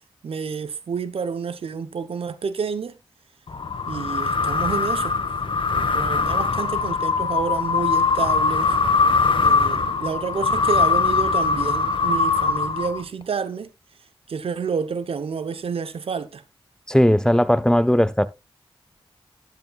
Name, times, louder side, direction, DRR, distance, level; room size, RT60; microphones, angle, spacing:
voice 1, 0.2-3.0 3.9-5.2 5.7-8.8 9.4-13.7 14.3-16.4, right 6 dB, 80° right, 0.9 m, -29 dB
sound 1, 3.5-13.2, left 4 dB, 60° left, 1.4 m, -21 dB
voice 2, 16.9-18.3, equal, 5° left, 0.7 m, -17 dB
12.0 x 9.7 x 2.4 m
cardioid pair, 45°, 10 cm